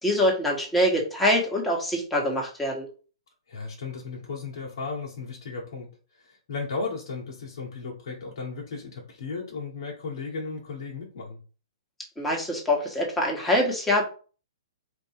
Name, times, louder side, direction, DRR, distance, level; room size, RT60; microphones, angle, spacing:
voice 1, 0.0-2.9 12.2-14.0, left 1 dB, 5° left, -2 dB, 1.5 m, -24 dB
voice 2, 3.5-5.9 6.2-11.4, left 4 dB, 60° left, -2 dB, 1.3 m, -35 dB
4.5 x 2.6 x 4.5 m, 0.38 s
hypercardioid pair, 130°, 3 cm